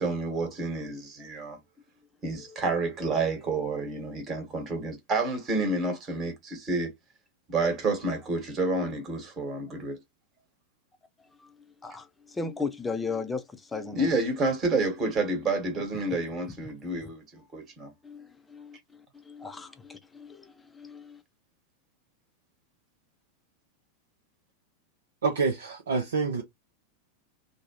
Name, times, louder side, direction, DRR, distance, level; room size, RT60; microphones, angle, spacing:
voice 1, 0.0-1.6 2.2-6.9 7.5-10.0 13.9-17.9, right 2 dB, 30° right, 1.4 m, -29 dB
voice 2, 11.8-14.1 18.0-21.2, left 4 dB, 10° left, 0.6 m, -36 dB
voice 3, 25.2-26.4, right 4 dB, 65° right, 0.7 m, -27 dB
3.0 x 2.2 x 2.8 m
figure-of-eight pair, 90°, 0 cm